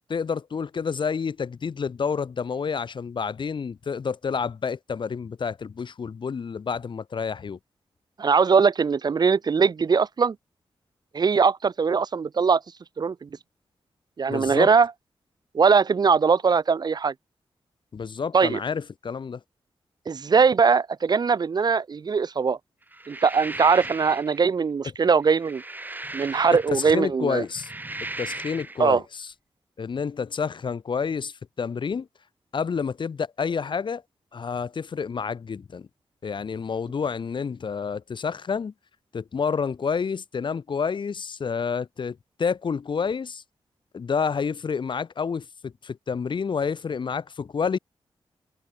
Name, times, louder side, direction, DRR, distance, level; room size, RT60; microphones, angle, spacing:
voice 1, 0.1-7.6 14.3-14.7 17.9-19.4 26.7-27.7 28.2-29.3 29.8-32.1 32.5-34.0 34.3-35.9 36.2-38.7 39.1-43.4 43.9-47.8, left 6 dB, 55° left, 2.5 m, -29 dB
voice 2, 8.2-10.3 11.1-12.6 13.0-13.3 14.2-14.9 15.5-17.1 18.3-18.6 20.1-22.6 23.1-25.6 26.1-27.4 28.8-29.0, right 5 dB, 45° right, 0.7 m, -21 dB
sound 1, 22.9-24.4 25.2-26.9 27.4-28.8, right 2 dB, 20° right, 6.4 m, -37 dB
wide cardioid pair, 120°, 10 cm